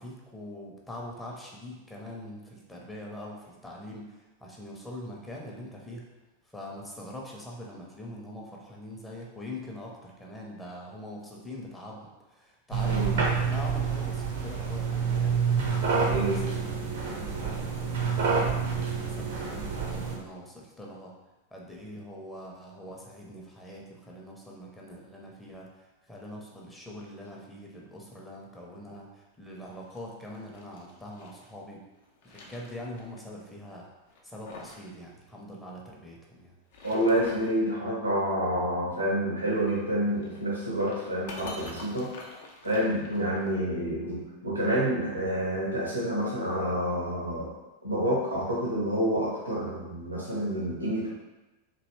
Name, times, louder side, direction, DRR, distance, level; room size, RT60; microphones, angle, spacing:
voice 1, 0.0-6.0 6.4-15.4 15.9-21.1 21.5-31.8 32.2-33.9 34.2-36.6, left 1 dB, 10° left, -2 dB, 0.7 m, -43 dB
sound 1, 12.7-20.2, right 5 dB, 60° right, 0.7 m, -28 dB
voice 2, 16.1-16.4 36.8-42.1 42.6-47.5 47.8-51.1, right 1 dB, 85° right, -5 dB, 1.0 m, -28 dB
sound 2, 29.7-31.5 31.9-33.2 33.5-33.6 34.1-34.9 35.1-35.2 36.5-37.6 39.5-43.6, left 2 dB, 55° left, 0.5 m, -47 dB
3.1 x 2.6 x 3.1 m, 1.1 s
figure-of-eight pair, 90°, 0 cm